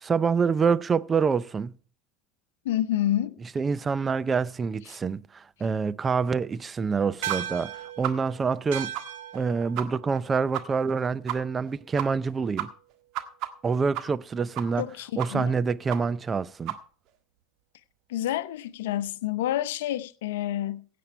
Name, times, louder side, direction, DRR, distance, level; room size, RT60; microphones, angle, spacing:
voice 1, 0.0-1.7 3.6-8.9 9.3-12.7 13.6-14.8 15.2-16.7, right 5 dB, 25° right, 0.6 m, -26 dB
voice 2, 2.6-3.4 14.8-15.5 18.1-20.9, left 12 dB, 80° left, 0.7 m, -28 dB
sound 1, 7.2-11.9, right 11 dB, 75° right, 1.1 m, -39 dB
sound 2, 7.3-7.4 7.6-7.7 8.0-8.1 8.5-8.6 8.9-9.0 9.3-9.4 9.7-9.8 10.1-10.2 10.5-10.6 10.9-11.0 11.3-11.4 11.7-11.8 12.0-12.3 12.6-14.3 14.5-14.9 15.2-15.5 15.9-16.0 16.3-16.4 16.7-16.8, right 14 dB, 60° right, 1.6 m, -32 dB
16.5 x 8.5 x 4.4 m
hypercardioid pair, 95°, 0 cm